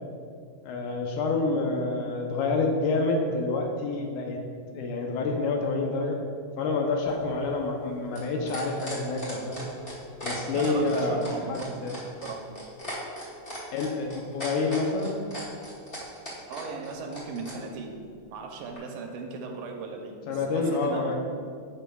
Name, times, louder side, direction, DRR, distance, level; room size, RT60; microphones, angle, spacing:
voice 1, 0.6-4.4 4.7-6.2 6.6-9.7 10.2-12.0 13.7-15.2 20.3-21.2, left 3 dB, 80° left, 1 dB, 2.0 m, -28 dB
sound 1, 7.0-17.6 18.8-18.9, equal, 40° left, 0.8 m, -39 dB
voice 2, 10.5-11.7 12.2-12.4 16.5-18.0 18.3-21.2, right 4 dB, 80° right, 3 dB, 2.1 m, -37 dB
12.0 x 5.5 x 2.3 m, 2.2 s
omnidirectional pair, 3.8 m